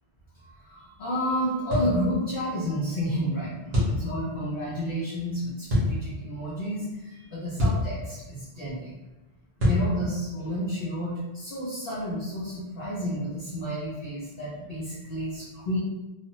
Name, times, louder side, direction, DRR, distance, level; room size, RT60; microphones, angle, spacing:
voice 1, 0.4-8.9 9.6-15.8, equal, 60° left, -9 dB, 0.8 m, -31 dB
sound 1, 1.7-1.9 3.7-4.0 5.7-5.9 7.6-7.9 9.6-9.9, left 1 dB, 75° right, 1.3 m, -23 dB
3.1 x 2.2 x 2.9 m, 1.0 s
omnidirectional pair, 1.1 m